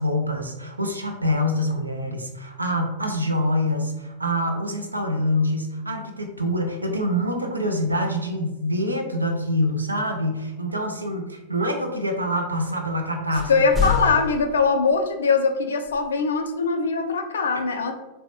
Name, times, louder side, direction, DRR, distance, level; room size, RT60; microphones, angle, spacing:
voice 1, 0.0-13.5, equal, 80° right, 5 dB, 0.4 m, -25 dB
sound 1, 13.3-15.0 15.9-16.0, left 5 dB, 5° right, 0.5 m, -27 dB
voice 2, 13.5-17.9, left 4 dB, 65° left, 7 dB, 0.3 m, -22 dB
3.2 x 2.0 x 2.7 m, 1.0 s
figure-of-eight pair, 90°, 0 cm